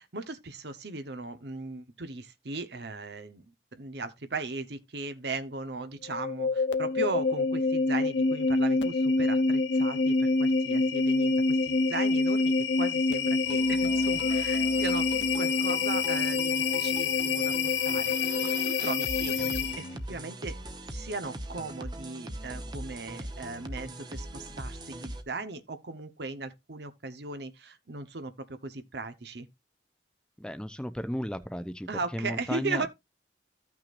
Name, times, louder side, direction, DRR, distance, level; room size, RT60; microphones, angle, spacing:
voice 1, 0.0-15.1 15.4-20.6 20.9-29.5 31.9-32.9, right 3 dB, 70° right, 1.0 m, -38 dB
sound 1, 6.0-20.0, left 3 dB, 85° left, 0.8 m, -26 dB
sound 2, 13.4-25.2, right 1 dB, 25° right, 0.9 m, -41 dB
voice 2, 30.4-32.9, equal, 5° left, 0.6 m, -35 dB
14.5 x 5.9 x 2.5 m
head